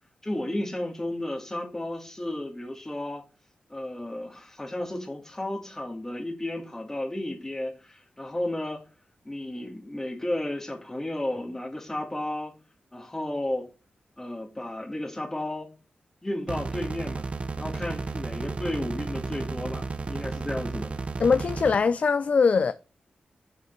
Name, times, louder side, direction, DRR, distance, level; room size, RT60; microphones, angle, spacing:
voice 1, 0.2-3.2 3.7-8.8 9.3-12.5 12.9-13.7 14.2-15.7 16.2-17.3 17.6-20.9, left 1 dB, 15° left, 1.9 m, -33 dB
sound 1, 16.5-21.8, right 3 dB, 40° right, 0.7 m, -33 dB
voice 2, 21.2-22.7, left 5 dB, 55° left, 0.5 m, -22 dB
7.9 x 6.0 x 4.5 m
wide cardioid pair, 105°, 3 cm